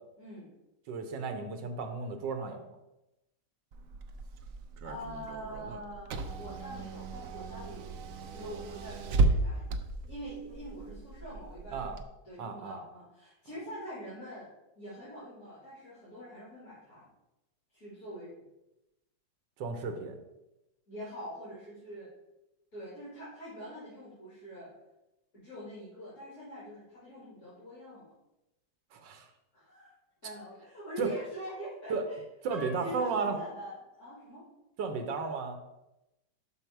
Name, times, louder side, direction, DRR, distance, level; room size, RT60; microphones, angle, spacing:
voice 1, 0.2-0.5 4.8-7.9 8.3-9.7 10.1-11.9 12.2-14.5 14.8-17.1 17.7-18.3 20.9-22.1 22.7-24.7 25.3-28.1 29.5-29.9 30.2-32.2 32.5-34.4, equal, 55° left, -9 dB, 3.2 m, -44 dB
voice 2, 0.9-2.7 11.7-12.0 12.4-12.8 19.6-20.2 28.9-29.3 31.0-31.1 31.9-32.1 32.4-33.4 34.8-35.6, right 4 dB, 90° right, 6 dB, 1.5 m, -34 dB
Car / Engine, 3.7-12.0, right 3 dB, 65° right, 0.9 m, -34 dB
6.4 x 5.6 x 4.5 m, 0.93 s
omnidirectional pair, 1.9 m